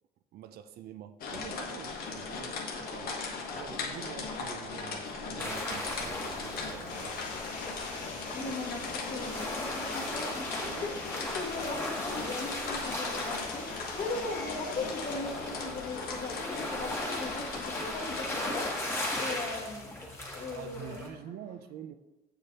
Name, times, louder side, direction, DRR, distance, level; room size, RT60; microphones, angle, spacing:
voice 1, 0.3-3.2 3.5-7.2 10.6-11.0 20.5-21.9, right 10 dB, 65° right, 10 dB, 0.5 m, -46 dB
sound 1, 1.2-19.1, left 4 dB, 60° left, 1.2 m, -39 dB
sound 2, 5.4-21.1, left 1 dB, 15° left, 1.4 m, -38 dB
Stream, 6.9-15.2, left 3 dB, 90° left, 2.2 m, -43 dB
voice 2, 8.3-8.8 9.1-21.0, left 3 dB, 45° left, -1 dB, 1.9 m, -39 dB
7.2 x 6.8 x 2.9 m, 1.0 s
cardioid pair, 110°, 17 cm